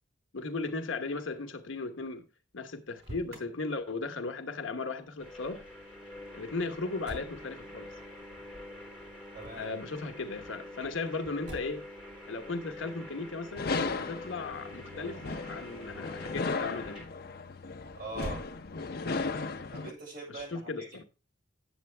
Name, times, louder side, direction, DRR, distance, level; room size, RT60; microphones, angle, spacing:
voice 1, 0.3-2.3 2.5-5.6 6.3-7.9 9.6-11.9 12.3-17.1 20.3-21.0, left 3 dB, 80° left, 1.0 m, -36 dB
Motor vehicle (road), 2.9-3.5 7.0-7.4 9.4-9.7 11.4-11.9 13.5-13.8 18.1-19.0, equal, 65° right, 3.3 m, -44 dB
sound 1, 5.2-17.1, left 1 dB, 5° right, 3.6 m, -46 dB
voice 2, 9.3-9.7 18.0-18.4 19.7-21.1, right 3 dB, 50° right, 5.2 m, -42 dB
sound 2, 13.6-19.9, left 4 dB, 50° left, 0.6 m, -36 dB
9.0 x 7.8 x 3.3 m
head